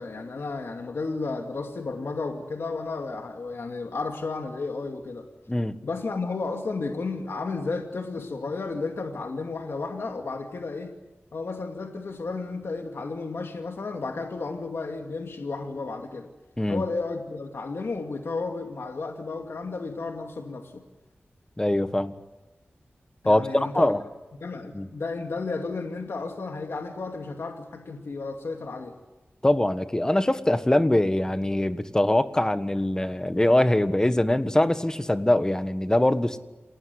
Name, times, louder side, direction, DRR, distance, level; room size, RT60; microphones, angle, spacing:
voice 1, 0.0-5.3 5.8-10.9 11.3-16.3 16.7-20.8 23.2-23.9 24.4-29.0, left 3 dB, 80° left, 3 dB, 2.4 m, -33 dB
voice 2, 21.6-22.1 23.2-24.0 24.7-24.9 29.4-36.4, left 1 dB, 15° left, 10 dB, 1.5 m, -23 dB
28.5 x 19.5 x 9.7 m, 1.1 s
wide cardioid pair, 90°, 4 cm